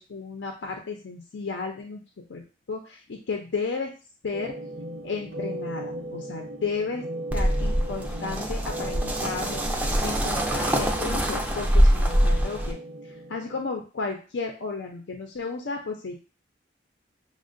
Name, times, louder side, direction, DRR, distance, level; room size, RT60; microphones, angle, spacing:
voice 1, 0.0-2.0 2.3-2.4 2.7-3.9 4.2-4.5 5.0-7.0 7.3-9.6 10.0-12.8 13.3-16.1, left 4 dB, 80° left, 2 dB, 0.5 m, -33 dB
sound 1, 4.3-13.7, right 1 dB, 85° right, 0.8 m, -38 dB
sound 2, 7.3-12.7, equal, 10° right, 0.3 m, -24 dB
6.2 x 2.1 x 2.5 m, 0.36 s
head